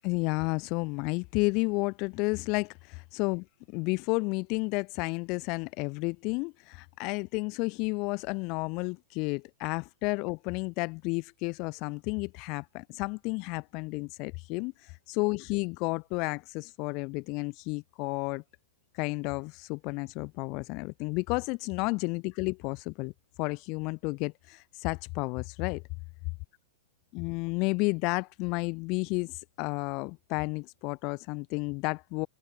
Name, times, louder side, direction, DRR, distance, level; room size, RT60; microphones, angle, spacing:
voice 1, 0.0-18.4 18.9-23.1 23.4-25.8 27.1-32.3, left 28 dB, 45° left, 2.7 m, -32 dB
figure-of-eight pair, 105°, 0 cm